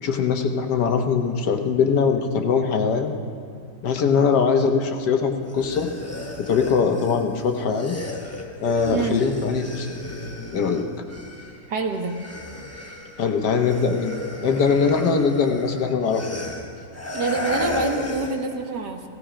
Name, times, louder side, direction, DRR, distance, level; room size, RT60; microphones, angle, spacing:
voice 1, 0.0-3.1 3.8-5.9 6.4-7.9 8.6-9.9 10.5-10.8 13.2-16.2, left 5 dB, 70° left, 5 dB, 1.6 m, -21 dB
sound 1, 5.4-11.7 11.9-18.5, left 2 dB, 10° left, 1.0 m, -34 dB
voice 2, 11.7-12.1 17.1-19.0, right 4 dB, 70° right, 4 dB, 1.7 m, -26 dB
16.5 x 16.0 x 5.0 m, 2.4 s
omnidirectional pair, 1.9 m